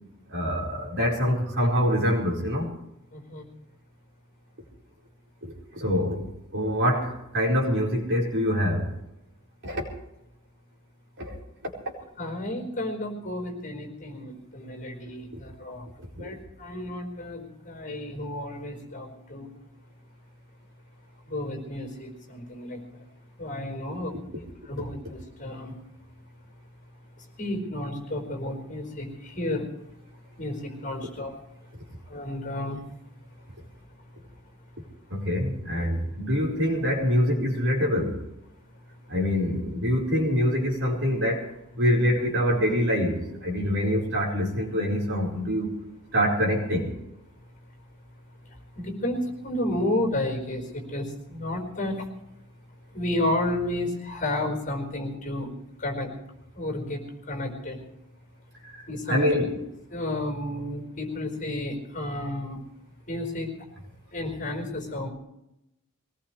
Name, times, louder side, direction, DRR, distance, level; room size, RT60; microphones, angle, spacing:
voice 1, 0.3-2.7 5.4-8.9 9.6-9.8 11.2-11.4 11.6-11.7 16.2-16.3 35.1-38.2 39.1-41.5 41.8-45.7 46.1-46.9 58.6-59.6, equal, 60° right, -1 dB, 4.4 m, -25 dB
voice 2, 3.1-3.5 12.2-15.8 16.2-19.5 21.3-22.8 23.4-24.1 24.7-25.7 27.4-29.1 29.3-29.6 30.4-31.3 32.1-32.8 48.8-50.6 50.9-51.0 51.3-52.0 52.9-55.5 55.8-56.1 56.5-57.0 57.3-57.8 58.9-59.4 59.9-62.6 63.1-63.5 64.1-65.1, left 1 dB, 35° left, 3 dB, 4.6 m, -31 dB
22.0 x 19.0 x 3.3 m, 0.86 s
head